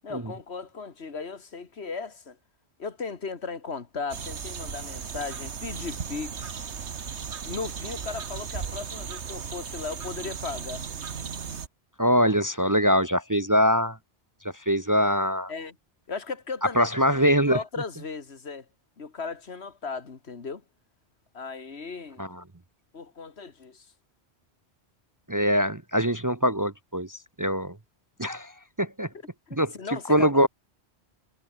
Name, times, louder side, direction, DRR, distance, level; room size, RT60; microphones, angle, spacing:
voice 1, 0.0-2.4 2.8-6.5 7.5-10.8 15.5-15.8 16.1-18.7 19.0-20.6 21.3-22.2 22.9-23.9 29.5-30.3, left 4 dB, 70° left, 2.1 m, -36 dB
sound 1, 4.1-11.7, right 6 dB, 85° right, 1.7 m, -36 dB
voice 2, 12.0-14.0 14.7-15.5 16.8-17.6 22.2-22.4 25.3-27.8 28.2-28.5 28.8-29.1 29.6-29.7 30.1-30.5, equal, 20° right, 0.8 m, -23 dB
omnidirectional pair, 1.1 m